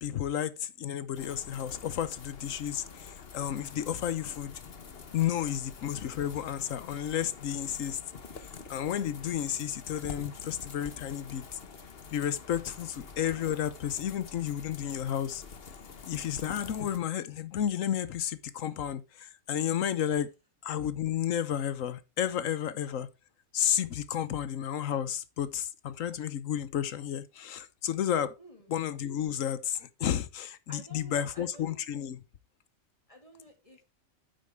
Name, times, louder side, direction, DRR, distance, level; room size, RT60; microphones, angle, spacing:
voice 1, 0.0-4.6 5.1-8.0 8.4-11.6 12.1-15.4 16.1-20.3 20.6-23.1 23.5-28.4 28.7-32.2, left 10 dB, 75° left, 1.2 m, -32 dB
sound 1, 1.1-17.0, left 5 dB, 50° left, 1.3 m, -47 dB
voice 2, 28.4-28.7 30.7-31.8 33.1-33.8, equal, 25° left, 2.2 m, -52 dB
9.2 x 7.7 x 3.5 m
omnidirectional pair, 1.4 m